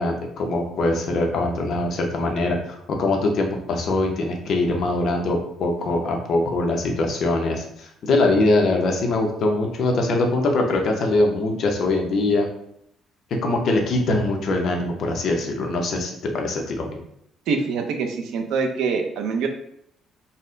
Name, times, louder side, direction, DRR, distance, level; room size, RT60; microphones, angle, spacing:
voice 1, 0.0-12.5 13.4-17.0, left 2 dB, 50° left, 2 dB, 0.7 m, -22 dB
voice 2, 17.5-19.5, right 5 dB, 75° right, 4 dB, 0.6 m, -24 dB
4.1 x 2.1 x 3.7 m, 0.72 s
cardioid pair, 160°, 0 cm